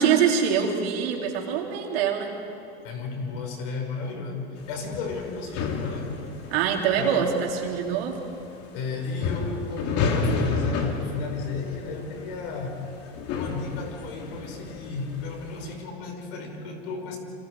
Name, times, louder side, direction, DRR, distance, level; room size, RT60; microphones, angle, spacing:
voice 1, 0.0-2.3 6.5-8.2, right 7 dB, 75° right, 0 dB, 3.7 m, -24 dB
voice 2, 2.8-6.1 6.4-6.5 6.9-7.3 8.7-12.8 13.3-17.2, left 4 dB, 70° left, 3 dB, 5.5 m, -34 dB
sound 1, 4.6-15.8, left 4 dB, 50° left, 3.0 m, -31 dB
27.0 x 26.5 x 4.9 m, 2.7 s
supercardioid pair, 105°, 30 cm